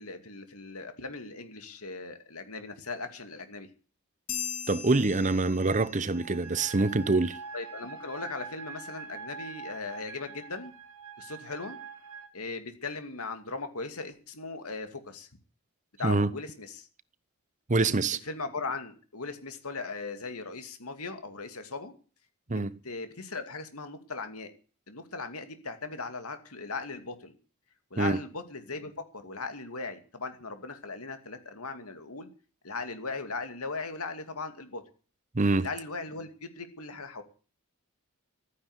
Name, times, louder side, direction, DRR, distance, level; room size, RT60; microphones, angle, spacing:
voice 1, 0.0-3.7 7.5-10.7 11.2-11.8 12.3-15.3 16.0-16.9 18.2-21.9 22.5-24.5 24.9-27.3 27.9-32.3 32.6-34.8 35.6-37.2, left 3 dB, 80° left, 2.5 m, -38 dB
sound 1, 4.3-6.1, left 8 dB, 40° left, 3.3 m, -38 dB
voice 2, 4.7-7.4 16.0-16.3 17.7-18.2 22.5-22.8 28.0-28.2 35.3-35.7, right 3 dB, 35° right, 0.8 m, -25 dB
sound 2, 6.1-12.3, right 5 dB, 75° right, 2.3 m, -44 dB
13.5 x 9.7 x 8.1 m
head